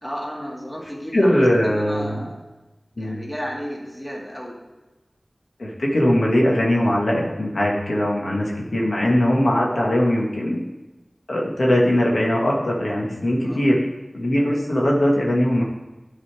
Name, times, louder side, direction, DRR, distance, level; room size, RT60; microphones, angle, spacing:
voice 1, 0.0-2.4 3.0-4.6 13.4-13.7, equal, 10° left, -2 dB, 1.8 m, -33 dB
voice 2, 1.1-2.2 3.0-3.2 5.6-10.6 11.3-13.8 14.1-15.6, left 1 dB, 85° left, -3 dB, 1.4 m, -20 dB
10.0 x 4.1 x 4.6 m, 1.1 s
wide cardioid pair, 55°, 0 cm